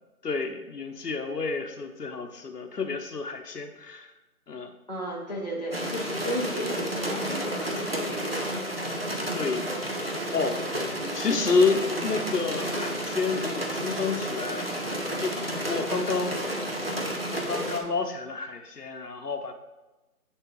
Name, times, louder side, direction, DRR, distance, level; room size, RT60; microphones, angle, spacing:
voice 1, 0.2-4.1 4.5-4.7 9.3-9.7 10.3-10.6 11.1-14.7 15.2-16.3 16.8-16.9 17.3-19.5, left 4 dB, 85° left, 6 dB, 1.0 m, -29 dB
voice 2, 4.9-8.4 10.9-11.1, equal, 30° left, -5 dB, 1.0 m, -34 dB
sound 1, 5.7-17.8, equal, 40° right, 0.8 m, -31 dB
8.2 x 6.5 x 3.1 m, 1.1 s
figure-of-eight pair, 180°, 46 cm